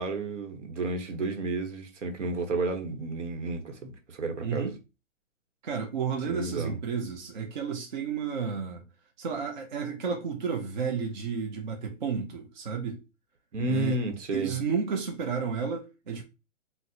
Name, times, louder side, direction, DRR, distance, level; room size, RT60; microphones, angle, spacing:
voice 1, 0.0-4.7 6.3-6.8 13.5-14.5, right 2 dB, 70° right, 0.9 m, -31 dB
voice 2, 4.4-4.8 5.6-8.8 9.2-13.0 13.7-14.0 14.3-16.2, right 6 dB, 40° right, 0.4 m, -32 dB
3.9 x 2.1 x 2.7 m
hypercardioid pair, 160°, 38 cm